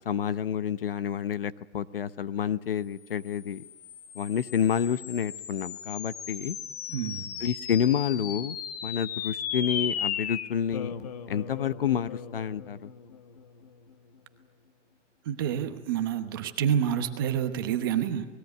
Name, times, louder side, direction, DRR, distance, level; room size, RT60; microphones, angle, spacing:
voice 1, 0.0-3.6 4.1-6.6 7.4-10.9 11.3-12.9, left 8 dB, 50° left, 15 dB, 0.8 m, -29 dB
sound 1, 3.2-13.9, left 8 dB, 30° left, 1.1 m, -37 dB
voice 2, 6.9-7.3 15.2-18.3, right 9 dB, 20° right, 8 dB, 1.0 m, -28 dB
28.0 x 20.5 x 9.4 m, 1.1 s
hypercardioid pair, 175°, 37 cm